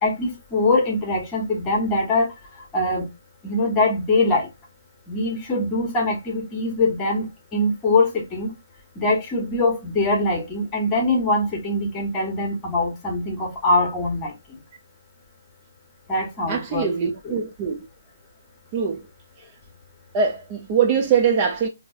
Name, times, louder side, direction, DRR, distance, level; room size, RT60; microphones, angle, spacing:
voice 1, 0.0-2.3 2.7-3.1 3.4-4.5 5.1-7.2 7.5-8.5 9.0-14.3 16.1-17.4, left 2 dB, 15° left, 1.3 m, -23 dB
voice 2, 16.5-17.8 18.7-19.0 20.1-21.7, right 6 dB, 30° right, 0.5 m, -22 dB
4.5 x 2.8 x 2.4 m
figure-of-eight pair, 145°, 0 cm